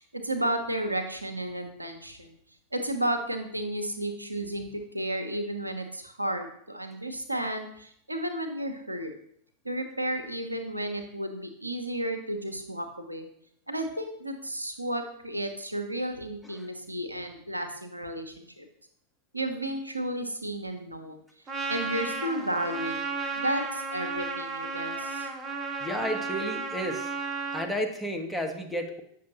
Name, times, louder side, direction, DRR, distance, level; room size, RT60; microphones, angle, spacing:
voice 1, 0.0-2.4 2.7-9.1 9.6-13.3 13.7-18.6 19.3-21.2 21.7-23.0 23.4-25.3, right 1 dB, 85° right, 5 dB, 0.8 m, -33 dB
Trumpet, 21.5-27.7, right 4 dB, 25° right, 1.0 m, -33 dB
voice 2, 25.8-27.1 27.5-29.0, equal, 5° left, 2 dB, 1.0 m, -32 dB
8.4 x 6.2 x 2.9 m, 0.69 s
figure-of-eight pair, 90°, 0 cm